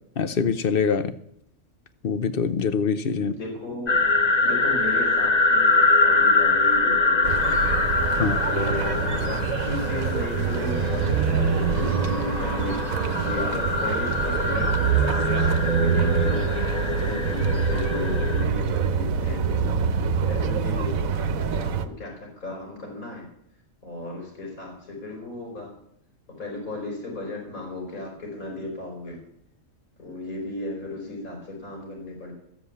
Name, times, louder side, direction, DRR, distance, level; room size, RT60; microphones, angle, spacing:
voice 1, 0.2-1.1 2.0-3.3 8.2-8.4, left 6 dB, 50° left, 12 dB, 0.8 m, -24 dB
voice 2, 3.1-4.0 4.4-7.6 8.1-14.7 15.0-16.4 17.0-19.7 20.3-23.2 23.8-25.7 26.4-29.2 30.0-32.3, left 2 dB, 75° left, 0 dB, 4.4 m, -35 dB
sound 1, 3.9-18.4, left 3 dB, 30° left, 1.1 m, -24 dB
sound 2, 7.2-21.9, right 6 dB, 70° right, 1.2 m, -25 dB
13.0 x 7.6 x 8.2 m, 0.72 s
omnidirectional pair, 1.5 m